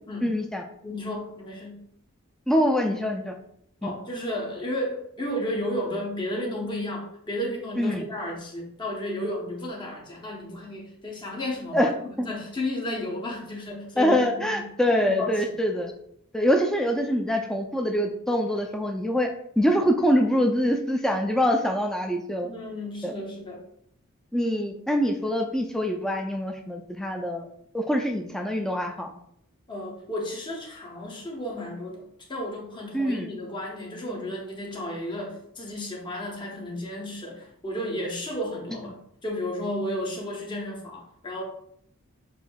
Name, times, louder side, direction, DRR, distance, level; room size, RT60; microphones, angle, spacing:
voice 1, 0.2-0.6 2.5-3.4 3.8-3.9 7.8-8.0 11.7-11.9 14.0-15.9 16.3-19.3 19.6-22.5 23.0-23.1 24.3-27.5 27.7-29.1 32.9-33.3, equal, ahead, 3 dB, 0.3 m, -24 dB
voice 2, 0.8-1.8 3.8-11.9 12.2-14.6 14.9-15.3 22.4-23.6 29.7-32.0 32.3-39.0 39.2-41.4, left 1 dB, 20° left, -2 dB, 0.9 m, -33 dB
6.6 x 2.6 x 2.3 m, 0.70 s
head